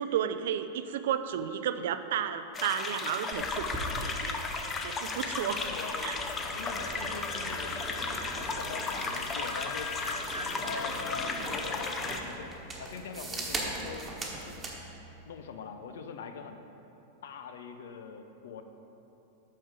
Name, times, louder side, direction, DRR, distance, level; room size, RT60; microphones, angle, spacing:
voice 1, 0.0-3.7 4.0-4.4 4.8-5.6 6.0-6.2, right 9 dB, 55° right, 11 dB, 0.4 m, -32 dB
sound 1, 2.5-12.2, left 4 dB, 25° left, 0.7 m, -35 dB
sound 2, 3.3-14.8, right 2 dB, 15° right, 1.3 m, -41 dB
voice 2, 5.6-9.9 10.6-14.6 15.2-16.6 17.2-18.6, left 5 dB, 60° left, 8 dB, 0.6 m, -43 dB
Wind instrument woodwind instrument, 6.8-10.8, left 4 dB, 80° right, 1.5 m, -43 dB
8.6 x 6.5 x 5.0 m, 3.0 s
figure-of-eight pair, 90°, 0 cm